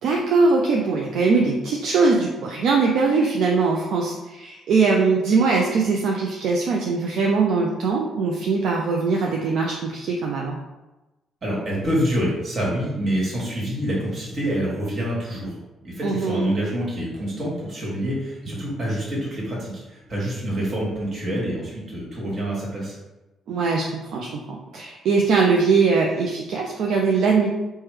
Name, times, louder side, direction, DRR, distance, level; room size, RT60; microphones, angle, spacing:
voice 1, 0.0-10.6 16.0-16.5 23.5-27.5, right 4 dB, 70° right, -1 dB, 0.4 m, -21 dB
voice 2, 11.4-15.6 15.8-23.0, equal, 50° right, -5 dB, 1.4 m, -26 dB
3.2 x 2.1 x 3.2 m, 1.0 s
supercardioid pair, 55°, 0 cm